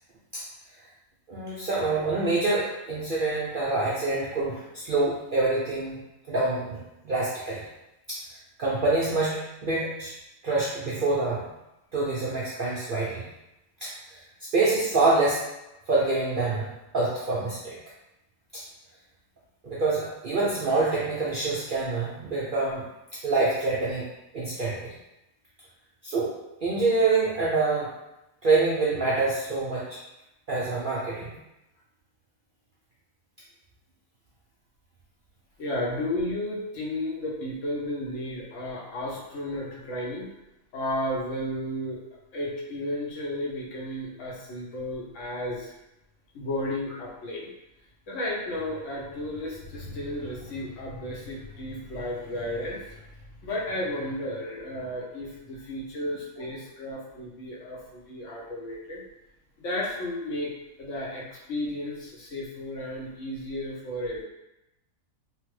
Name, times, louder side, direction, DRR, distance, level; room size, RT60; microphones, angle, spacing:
voice 1, 1.3-6.0 6.3-7.6 8.1-8.2 8.6-10.1 10.4-11.5 11.9-13.3 13.8-14.2 14.5-15.4 15.9-17.7 18.5-18.6 19.6-22.8 23.2-24.1 24.3-24.9 26.0-26.3 26.6-27.9 28.4-30.0 30.5-31.3, right 3 dB, 65° right, -7 dB, 0.5 m, -26 dB
voice 2, 35.6-40.3 40.7-42.0 42.3-45.7 46.3-47.5 48.1-53.0 53.4-59.0 59.6-60.5 60.8-64.2, left 1 dB, 65° left, -4 dB, 1.0 m, -33 dB
3.2 x 2.1 x 3.1 m, 0.92 s
omnidirectional pair, 1.5 m